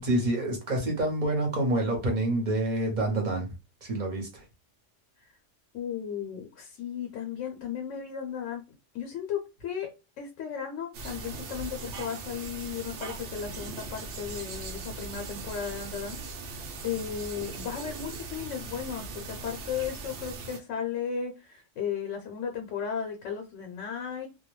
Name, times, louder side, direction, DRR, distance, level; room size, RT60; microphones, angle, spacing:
voice 1, 0.0-3.5 3.8-4.4, right 1 dB, 45° right, 0.9 m, -27 dB
voice 2, 5.7-9.9 10.2-16.2 16.5-24.3, left 7 dB, 80° left, 0.9 m, -35 dB
sound 1, 10.9-20.6, right 3 dB, 70° right, 0.8 m, -39 dB
2.2 x 2.2 x 3.0 m
omnidirectional pair, 1.3 m